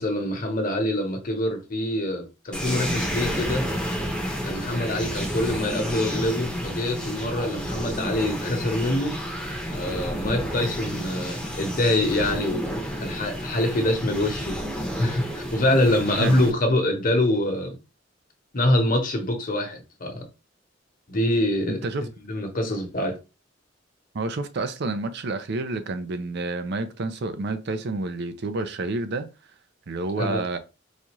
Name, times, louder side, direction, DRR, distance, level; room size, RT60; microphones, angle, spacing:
voice 1, 0.0-3.6 4.4-9.1 9.7-17.8 18.5-20.2 21.1-21.8 22.2-23.1 30.2-30.4, left 1 dB, 45° left, 1.0 m, -25 dB
sound 1, 2.5-16.5, equal, 5° left, 0.8 m, -30 dB
voice 2, 21.7-22.1 24.1-29.3 29.9-30.6, right 3 dB, 60° right, 0.5 m, -29 dB
4.0 x 2.4 x 3.0 m
head